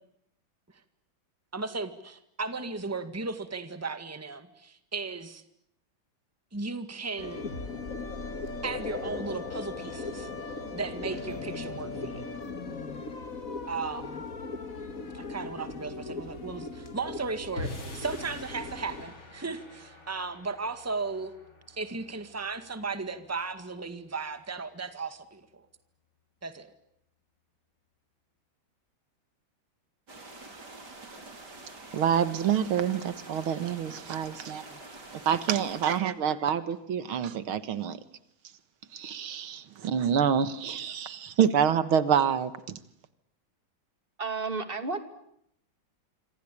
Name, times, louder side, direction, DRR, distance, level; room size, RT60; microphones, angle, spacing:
voice 1, 1.5-5.4 6.5-7.5 8.6-10.3 10.7-12.4 13.7-14.2 15.1-21.3 21.7-25.6 26.4-26.7, right 4 dB, 10° right, 10 dB, 1.8 m, -36 dB
sound 1, 7.2-19.1, left 3 dB, 40° left, 2.4 m, -38 dB
sound 2, 17.6-23.9, left 1 dB, 70° left, 5.9 m, -44 dB
sound 3, 30.1-36.0, right 2 dB, 50° right, 4.9 m, -46 dB
voice 2, 31.9-34.6 35.1-38.0 38.9-42.8, right 8 dB, 85° right, 14 dB, 2.3 m, -27 dB
voice 3, 44.2-45.0, right 4 dB, 25° right, 9 dB, 2.7 m, -31 dB
27.0 x 26.0 x 8.5 m, 0.75 s
omnidirectional pair, 2.3 m